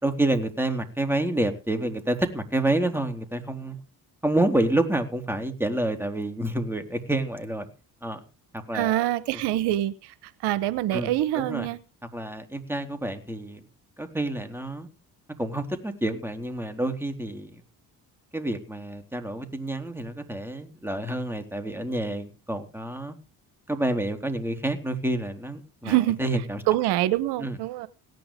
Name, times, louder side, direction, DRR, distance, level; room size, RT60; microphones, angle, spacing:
voice 1, 0.0-3.8 4.2-7.7 8.0-8.2 8.5-9.4 10.9-11.7 12.1-13.6 14.0-14.9 15.4-17.6 18.3-23.2 23.7-26.6 27.4-27.6, right 1 dB, 5° right, 3.9 m, -28 dB
voice 2, 8.7-10.1 10.4-11.8 25.8-26.2 26.7-27.9, right 14 dB, 85° right, 1.1 m, -25 dB
18.0 x 10.5 x 5.1 m
supercardioid pair, 70°, 39 cm